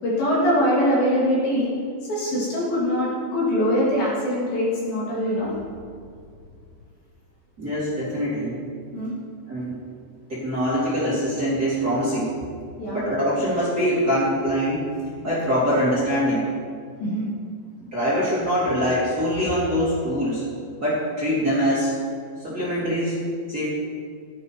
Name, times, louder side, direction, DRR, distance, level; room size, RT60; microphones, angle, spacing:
voice 1, 0.0-1.7 2.1-5.5 8.9-9.1 12.8-13.0 17.0-17.3, equal, 50° left, -7 dB, 4.3 m, -23 dB
voice 2, 7.6-8.6 9.5-9.8 10.3-12.3 12.9-14.9 15.2-16.5 17.9-20.4 20.8-21.9 22.4-23.2 23.5-23.7, equal, 20° right, -10 dB, 3.6 m, -23 dB
16.5 x 12.0 x 4.7 m, 2.2 s
omnidirectional pair, 5.7 m